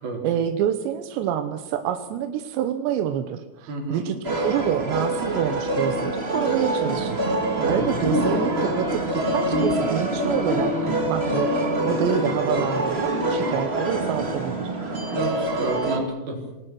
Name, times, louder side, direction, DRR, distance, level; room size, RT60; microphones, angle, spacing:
voice 1, 0.2-7.2 7.7-9.0 9.3-14.7, right 10 dB, 90° right, 8 dB, 3.3 m, -27 dB
voice 2, 3.7-4.1 7.6-8.0 15.1-16.4, right 3 dB, 60° right, 1 dB, 6.0 m, -29 dB
sound 1, 4.2-16.0, right 1 dB, 30° right, 1.1 m, -25 dB
28.0 x 19.5 x 6.3 m, 1.0 s
omnidirectional pair, 4.9 m